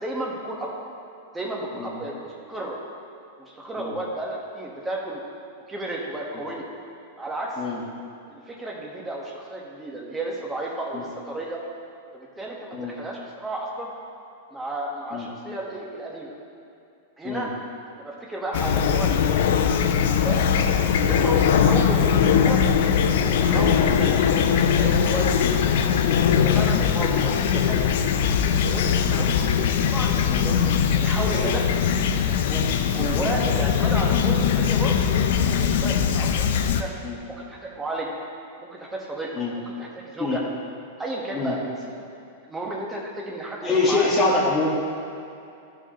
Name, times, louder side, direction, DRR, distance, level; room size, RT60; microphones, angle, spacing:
voice 1, 0.0-0.8 1.3-2.8 3.4-5.2 5.7-6.7 7.2-7.6 8.3-11.6 12.1-13.9 14.5-16.3 17.2-17.5 17.9-19.1 19.5-20.5 21.0-24.2 24.8-25.6 26.1-28.0 28.6-29.3 29.9-31.6 32.5-36.9 37.3-38.1 38.6-40.4 41.0-41.6 42.0-42.1 42.5-44.1, right 2 dB, 10° right, -3 dB, 1.3 m, -33 dB
Fowl / Chirp tweet, 18.5-36.8, left 7 dB, 65° left, 0.5 m, -21 dB
voice 2, 43.6-44.7, left 3 dB, 15° left, -5 dB, 1.7 m, -25 dB
13.5 x 4.9 x 3.0 m, 2.7 s
hypercardioid pair, 135°, 0 cm